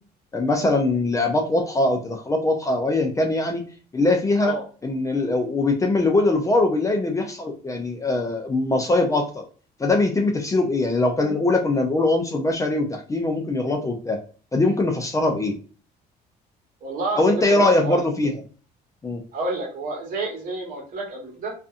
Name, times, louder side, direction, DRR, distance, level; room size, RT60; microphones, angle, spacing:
voice 1, 0.3-3.6 3.9-4.6 4.8-9.4 9.8-14.2 14.5-15.6 17.2-18.4 19.0-19.2, left 2 dB, 20° left, 3 dB, 0.5 m, -22 dB
voice 2, 16.8-18.1 19.3-21.5, right 3 dB, 55° right, -1 dB, 1.3 m, -29 dB
2.5 x 2.5 x 2.3 m, 0.38 s
cardioid pair, 110°, 17 cm